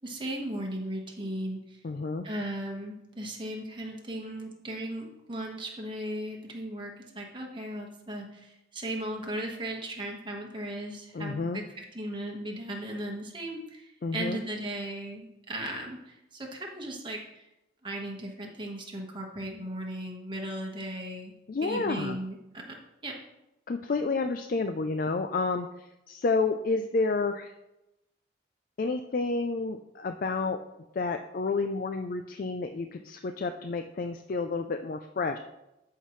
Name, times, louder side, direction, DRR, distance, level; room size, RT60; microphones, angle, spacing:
voice 1, 0.0-1.8 2.2-17.4 17.8-21.3 21.6-23.1, right 1 dB, 25° right, 0 dB, 1.4 m, -37 dB
voice 2, 1.8-2.2 11.1-11.6 14.0-14.4 21.5-22.2 23.7-27.5 28.8-30.6 31.0-35.4, left 3 dB, 45° left, 7 dB, 0.4 m, -30 dB
13.5 x 5.7 x 3.2 m, 0.93 s
head